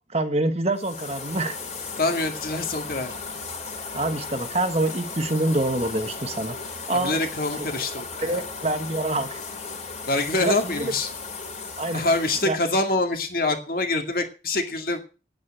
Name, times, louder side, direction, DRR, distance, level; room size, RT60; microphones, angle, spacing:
voice 1, 0.1-1.6 3.9-6.6 6.9-7.2 7.6-7.7 8.2-9.4 10.4-10.9 11.8-12.1 12.4-12.6, right 2 dB, 35° right, 8 dB, 1.2 m, -26 dB
sound 1, 0.8-12.5, left 4 dB, 40° left, 2.8 m, -36 dB
voice 2, 2.0-3.1 6.9-8.4 10.1-11.1 11.9-15.1, left 2 dB, 55° left, 5 dB, 2.1 m, -25 dB
8.9 x 8.8 x 8.3 m, 0.34 s
head